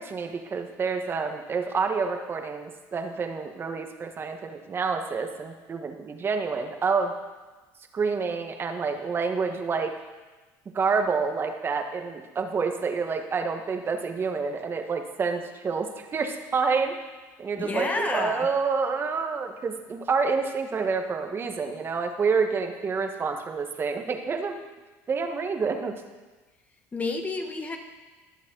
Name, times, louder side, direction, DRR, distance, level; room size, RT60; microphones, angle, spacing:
voice 1, 0.0-7.1 7.9-10.0 10.7-16.9 17.4-24.6 25.1-25.9, right 5 dB, 35° right, 5 dB, 1.4 m, -28 dB
voice 2, 17.6-18.5 26.9-27.8, left 3 dB, 20° left, 4 dB, 1.6 m, -29 dB
20.5 x 7.3 x 3.9 m, 1.2 s
supercardioid pair, 100°, 7 cm